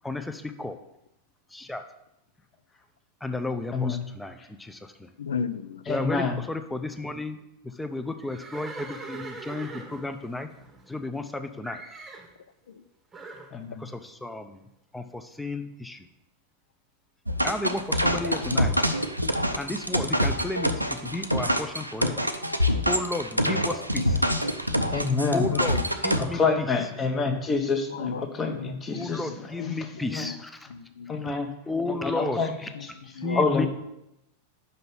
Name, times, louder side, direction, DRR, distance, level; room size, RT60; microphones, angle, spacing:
voice 1, 0.0-0.8 1.5-1.8 3.2-4.8 5.9-7.4 7.8-10.5 10.9-11.8 13.8-14.6 14.9-16.0 17.4-18.8 19.6-20.7 21.0-22.2 22.9-24.2 25.3-26.4 28.9-30.5 31.2-31.3 31.7-32.4 33.2-33.7, left 2 dB, 5° left, 8 dB, 0.6 m, -33 dB
voice 2, 5.2-5.9 12.7-12.8 25.5-26.5 27.9-30.4 30.7-31.1 32.2-33.7, left 6 dB, 65° left, 13 dB, 0.4 m, -36 dB
voice 3, 5.9-6.4 13.5-13.8 24.9-25.5 26.2-29.7 30.1-30.3 31.1-31.5 31.9-32.9 33.3-33.7, left 4 dB, 20° left, 5 dB, 1.0 m, -27 dB
Livestock farm animals working animals, 8.2-11.3 11.6-12.3 13.1-13.5, right 4 dB, 15° right, 1.0 m, -42 dB
sound 1, 17.3-26.2, equal, 90° right, 0.5 m, -25 dB
5.7 x 5.3 x 5.9 m, 0.86 s
figure-of-eight pair, 90°, 0 cm